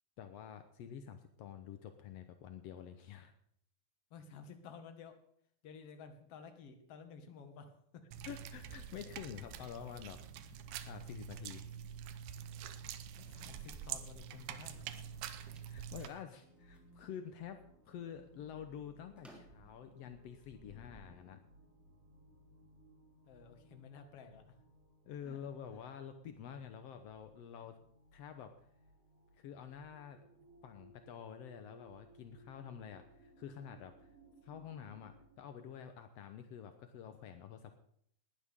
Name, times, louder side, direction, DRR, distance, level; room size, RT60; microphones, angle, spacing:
voice 1, 0.2-3.3 8.2-11.6 15.7-21.5 25.1-27.8 28.1-28.5 29.4-30.2 30.6-34.1 34.4-37.8, left 8 dB, 80° left, 8 dB, 1.4 m, -48 dB
voice 2, 4.1-5.2 5.6-8.1 13.2-14.9 23.3-24.6 25.2-25.4 25.7-25.9, left 5 dB, 50° left, 6 dB, 2.4 m, -53 dB
sound 1, 8.1-16.1, right 9 dB, 90° right, 2.9 m, -46 dB
sound 2, 14.8-16.9 17.4-18.0 18.3-21.1, equal, ahead, 2.8 m, -63 dB
sound 3, 16.4-35.4, right 1 dB, 45° right, 3.8 m, -64 dB
19.5 x 12.5 x 3.7 m, 0.67 s
omnidirectional pair, 4.2 m